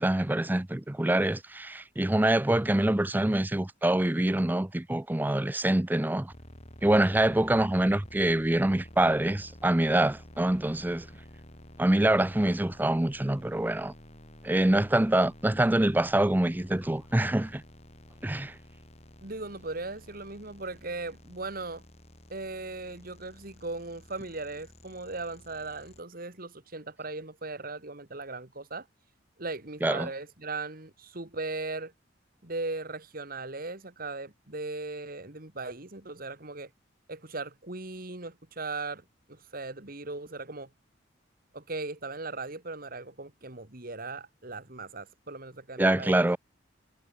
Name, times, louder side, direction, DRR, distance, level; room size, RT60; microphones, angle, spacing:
voice 1, 0.0-6.3 6.8-11.1 11.8-13.9 14.4-17.6 18.2-18.5 29.8-30.1 45.8-46.4, right 1 dB, 10° right, 0.5 m, -25 dB
sound 1, 6.3-26.0, left 1 dB, 35° left, 3.5 m, -51 dB
voice 2, 19.2-21.8 22.3-28.9 29.4-31.9 32.4-36.7 37.1-39.0 39.3-40.7 41.5-46.3, right 3 dB, 50° right, 2.3 m, -38 dB
head